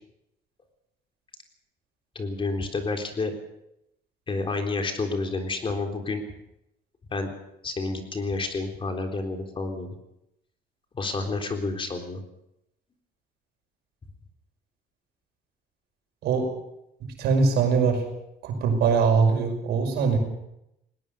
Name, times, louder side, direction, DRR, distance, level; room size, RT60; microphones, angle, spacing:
voice 1, 2.2-3.3 4.3-6.2 7.1-7.3 7.6-9.9 10.9-12.2, left 3 dB, 30° left, 4 dB, 3.8 m, -29 dB
voice 2, 17.0-18.0 18.4-20.2, right 5 dB, 80° right, 4 dB, 5.6 m, -22 dB
20.0 x 19.0 x 6.9 m, 0.84 s
cardioid pair, 110°, 17 cm